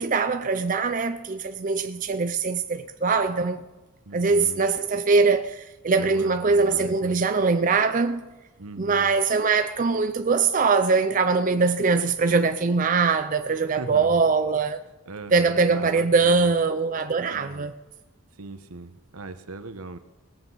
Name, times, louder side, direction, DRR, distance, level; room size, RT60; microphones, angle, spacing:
voice 1, 0.0-3.6 4.1-8.3 8.8-14.8 15.3-17.7, right 4 dB, 35° right, 0.5 m, -22 dB
voice 2, 4.0-4.6 6.0-7.2 8.6-9.1 13.7-14.2 15.1-16.5 17.3-17.7 18.4-20.0, right 2 dB, 80° right, 1.0 m, -39 dB
19.0 x 8.1 x 5.5 m
head